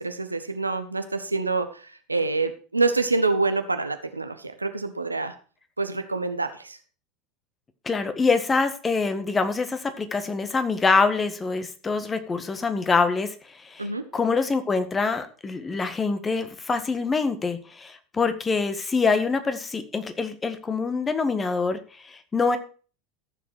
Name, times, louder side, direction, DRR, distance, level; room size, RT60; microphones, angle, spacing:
voice 1, 0.0-5.3 5.8-6.8 13.8-14.1, right 3 dB, 90° right, 8 dB, 1.2 m, -26 dB
voice 2, 7.8-13.3 13.6-13.9 14.1-22.6, left 4 dB, 20° left, 10 dB, 1.7 m, -25 dB
14.0 x 7.4 x 4.7 m, 0.38 s
figure-of-eight pair, 75°, 0 cm